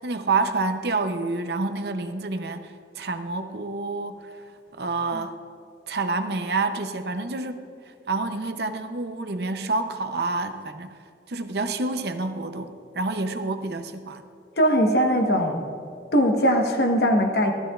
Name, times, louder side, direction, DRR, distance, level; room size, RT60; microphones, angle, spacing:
voice 1, 0.0-4.2 4.8-5.3 5.9-7.6 8.1-10.9 11.3-14.2, right 3 dB, 65° right, 8 dB, 0.7 m, -28 dB
voice 2, 14.6-15.7 16.1-17.5, equal, 60° left, 3 dB, 1.2 m, -20 dB
15.0 x 12.5 x 2.4 m, 2.4 s
head